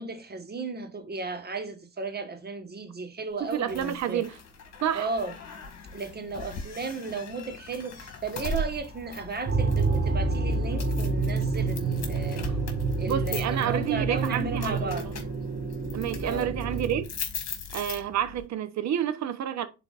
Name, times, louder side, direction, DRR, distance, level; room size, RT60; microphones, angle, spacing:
voice 1, 0.0-4.3 4.9-5.3 5.9-12.5 13.0-15.1 16.2-16.5, right 3 dB, 35° right, 1.3 m, -35 dB
sound 1, 3.5-18.5, left 3 dB, 60° left, 1.7 m, -40 dB
voice 2, 3.5-4.3 4.8-5.1 13.1-15.1 15.9-17.1 17.7-19.7, right 10 dB, 65° right, 0.8 m, -29 dB
sound 2, 9.4-17.0, right 3 dB, 50° right, 1.7 m, -28 dB
10.5 x 4.1 x 2.4 m
cardioid pair, 90°, 30 cm